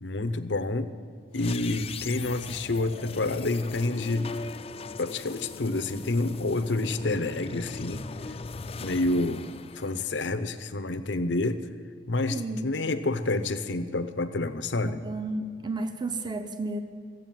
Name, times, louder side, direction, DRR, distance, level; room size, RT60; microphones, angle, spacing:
voice 1, 0.0-0.9 1.3-4.3 5.0-8.0 8.8-11.6 12.1-15.0, left 2 dB, 80° left, 11 dB, 0.8 m, -28 dB
sound 1, 1.3-10.6, left 4 dB, 35° left, 0.4 m, -39 dB
voice 2, 12.3-12.7 14.8-16.8, right 2 dB, 25° right, 8 dB, 0.7 m, -32 dB
15.0 x 8.0 x 9.2 m, 2.2 s
head